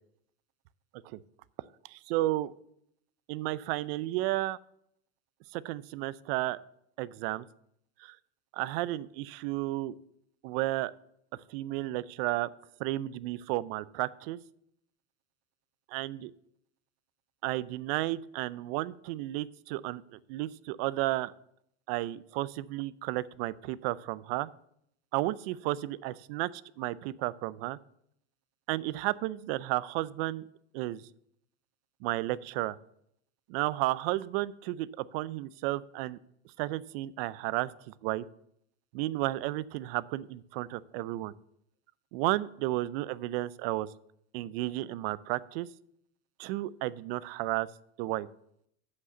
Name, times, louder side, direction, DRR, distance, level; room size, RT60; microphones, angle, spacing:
voice 1, 1.9-2.5 3.3-4.6 5.5-6.6 7.0-7.4 8.0-8.2 8.5-9.9 10.4-10.9 11.5-12.5 12.8-14.4 15.9-16.3 17.4-21.3 21.9-24.5 25.1-27.8 28.7-30.4 30.7-31.0 32.0-32.8 33.5-36.2 36.6-37.7 38.0-38.3 38.9-41.3 42.1-43.9 44.3-45.7 46.4-47.7 48.0-48.3, right 17 dB, 65° right, 18 dB, 0.5 m, -32 dB
8.4 x 5.0 x 6.6 m, 0.71 s
supercardioid pair, 140°, 32 cm